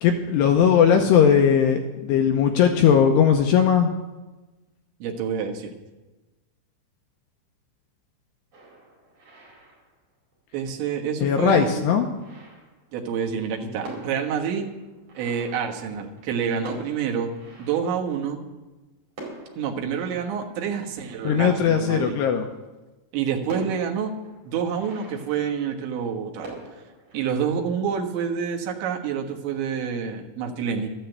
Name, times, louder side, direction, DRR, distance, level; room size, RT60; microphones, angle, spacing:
voice 1, 0.0-3.9 11.2-12.1 21.2-22.4, left 7 dB, 80° left, 4 dB, 2.6 m, -18 dB
voice 2, 5.0-5.7 10.5-11.9 12.9-14.7 15.2-17.3 17.6-18.4 19.6-22.2 23.1-24.1 24.5-26.6 27.1-30.9, right 7 dB, 75° right, 1 dB, 3.7 m, -28 dB
sound 1, 8.5-10.3 11.1-11.2 11.5-13.2 13.5-13.6 13.8-18.6 19.1-21.7 22.3-22.4 22.7-22.8 23.5-26.1 26.4-27.3, right 2 dB, 40° right, 5.9 m, -43 dB
13.0 x 10.0 x 8.0 m, 1.1 s
omnidirectional pair, 5.5 m